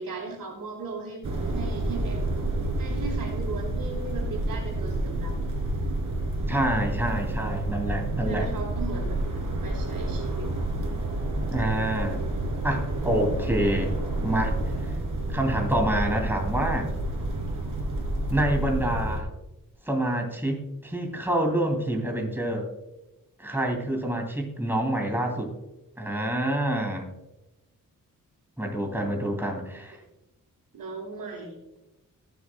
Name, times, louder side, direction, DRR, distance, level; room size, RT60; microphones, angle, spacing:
voice 1, 0.0-2.2 2.8-5.4 8.3-9.2 9.6-10.5 30.7-31.5, right 4 dB, 85° right, 0 dB, 3.3 m, -37 dB
sound 1, 1.2-19.2, right 1 dB, 65° right, 2.7 m, -29 dB
voice 2, 6.5-8.5 11.5-12.2 12.6-13.9 14.2-14.6 15.3-16.9 18.3-19.3 19.9-22.7 23.4-25.5 26.0-27.1 28.6-30.0, right 1 dB, 5° right, 2 dB, 2.7 m, -27 dB
19.5 x 7.2 x 2.2 m, 0.97 s
cardioid pair, 80°, 33 cm